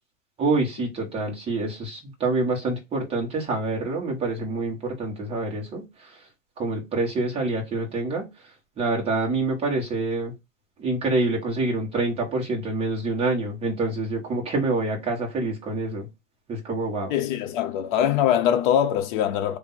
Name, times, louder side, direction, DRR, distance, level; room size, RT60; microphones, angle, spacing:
voice 1, 0.4-6.2 6.6-8.3 8.8-10.3 10.8-16.1 16.5-17.1, right 2 dB, 15° right, 1.4 m, -26 dB
voice 2, 17.1-19.6, left 10 dB, 40° left, 0.8 m, -22 dB
3.5 x 2.7 x 4.1 m
hypercardioid pair, 135°, 39 cm